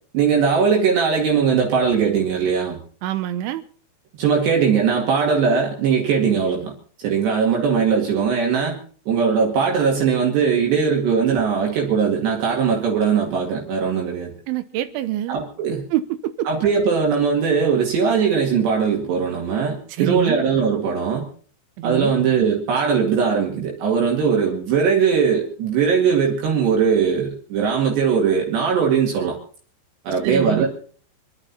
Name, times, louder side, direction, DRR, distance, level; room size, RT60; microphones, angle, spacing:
voice 1, 0.1-2.8 4.2-6.7 7.0-8.8 9.1-14.3 15.3-15.8 16.5-21.3 21.8-29.4 30.1-30.7, right 6 dB, 65° right, 4.2 m, -20 dB
voice 2, 3.0-3.6 14.5-15.4 15.9-16.5 20.0-20.4 21.8-22.1 30.2-30.7, right 12 dB, 80° right, 3.3 m, -25 dB
27.0 x 10.5 x 4.2 m
omnidirectional pair, 5.6 m